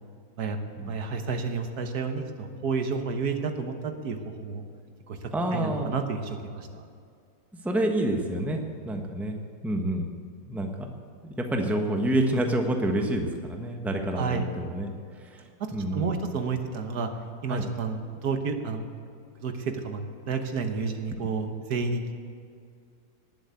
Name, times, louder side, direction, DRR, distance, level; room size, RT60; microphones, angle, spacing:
voice 1, 0.4-4.6 5.1-5.2 5.5-6.8 14.2-14.5 15.6-17.1 17.4-18.9 19.4-22.1, right 5 dB, 75° right, 6 dB, 1.7 m, -31 dB
voice 2, 5.3-5.9 7.5-9.4 9.6-10.1 10.5-10.9 11.2-14.9 15.2-15.4 15.7-16.2 17.5-17.6, right 1 dB, ahead, 3 dB, 1.1 m, -28 dB
19.0 x 7.8 x 8.3 m, 2.3 s
omnidirectional pair, 1.7 m